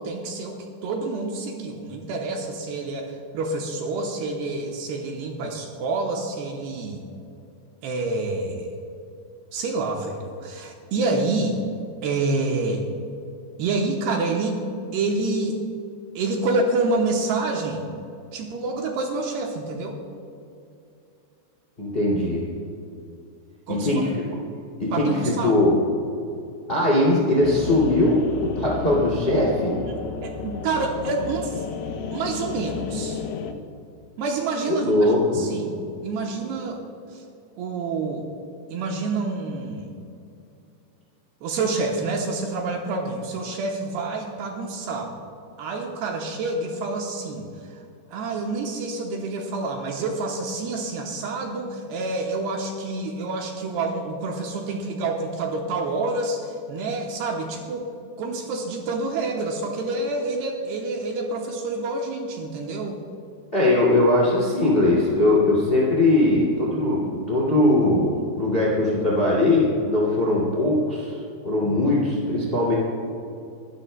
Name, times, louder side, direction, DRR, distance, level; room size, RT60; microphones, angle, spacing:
voice 1, 0.0-7.0 7.8-8.7 9.5-11.6 12.0-12.9 13.6-14.7 14.9-15.6 16.2-17.8 18.3-20.0 23.7-24.0 24.9-25.6 29.9-31.6 32.1-33.2 34.2-35.8 36.0-36.8 37.1-37.2 37.6-38.3 38.7-39.9 41.4-45.1 45.6-47.8 48.1-57.9 58.2-63.0, right 3 dB, 75° right, 1 dB, 2.8 m, -28 dB
voice 2, 21.8-22.5 23.7-24.1 24.8-25.8 26.7-29.8 34.7-35.4 63.5-72.7, left 1 dB, 25° left, -4 dB, 1.4 m, -20 dB
sound 1, 27.4-33.5, left 6 dB, 75° left, 2.2 m, -33 dB
26.0 x 12.5 x 2.2 m, 2.6 s
omnidirectional pair, 5.1 m